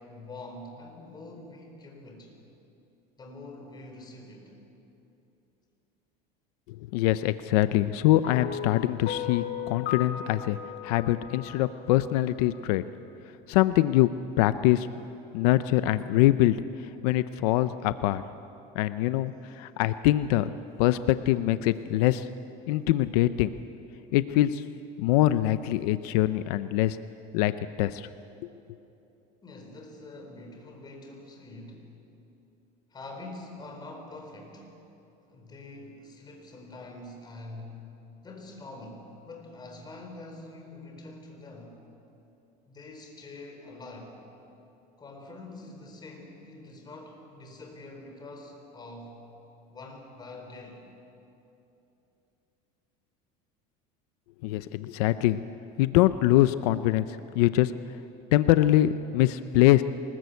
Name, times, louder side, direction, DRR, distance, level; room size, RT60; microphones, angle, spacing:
voice 1, 0.0-2.3 3.2-4.6 19.3-19.6 29.4-31.9 32.9-34.7 35.3-37.8 38.2-41.8 42.7-44.2 45.0-49.2 49.7-50.8, left 2 dB, 20° left, 2 dB, 4.3 m, -45 dB
voice 2, 6.7-10.6 10.8-12.8 13.5-14.1 14.4-14.9 15.3-18.2 18.7-20.5 20.8-22.3 22.7-23.5 24.1-24.6 25.0-27.0 27.3-27.5 27.8-28.1 28.4-28.5 54.4-55.4 55.8-57.7 58.3-59.8, left 15 dB, 90° left, 13 dB, 0.7 m, -24 dB
sound 1, 8.2-12.6, left 10 dB, 45° left, 1.5 m, -37 dB
23.5 x 20.5 x 8.3 m, 2.9 s
cardioid pair, 145°, 19 cm